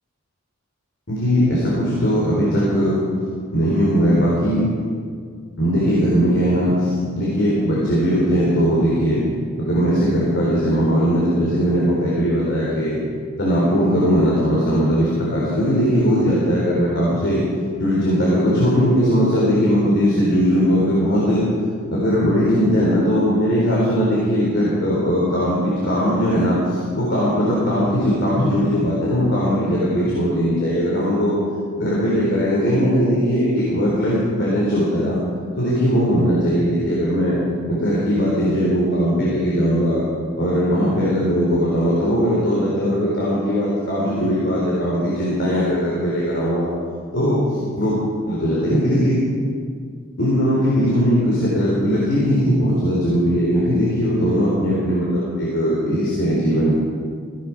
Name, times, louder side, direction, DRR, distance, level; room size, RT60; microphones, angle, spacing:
voice 1, 1.1-3.0 3.5-4.6 5.6-9.2 9.6-13.0 13.4-17.4 17.8-21.4 21.9-31.4 31.8-35.2 35.6-37.4 37.7-40.0 40.4-46.7 47.1-48.0 48.3-49.2 50.2-56.7, equal, 50° left, -6 dB, 4.1 m, -19 dB
17.0 x 16.5 x 4.8 m, 2.1 s
head